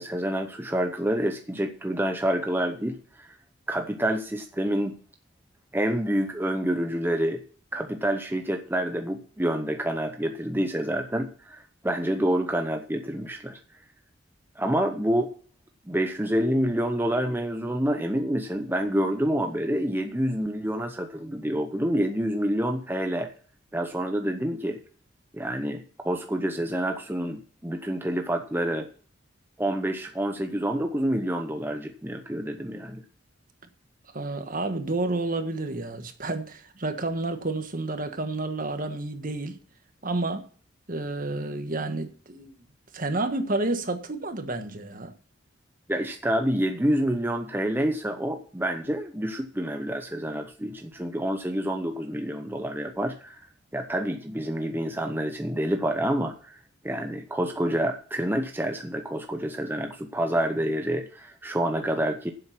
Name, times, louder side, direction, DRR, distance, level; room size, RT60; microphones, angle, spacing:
voice 1, 0.0-3.4 3.7-4.9 5.7-7.4 7.7-13.6 14.6-15.3 15.9-23.3 23.7-24.8 25.3-28.9 29.6-33.0 45.9-53.4 53.7-56.6 56.8-62.3, right 1 dB, 10° right, 0.7 m, -28 dB
voice 2, 34.1-39.6 40.0-40.4 40.9-42.6 42.9-45.1, right 2 dB, 45° right, 1.5 m, -30 dB
10.0 x 7.8 x 6.0 m
head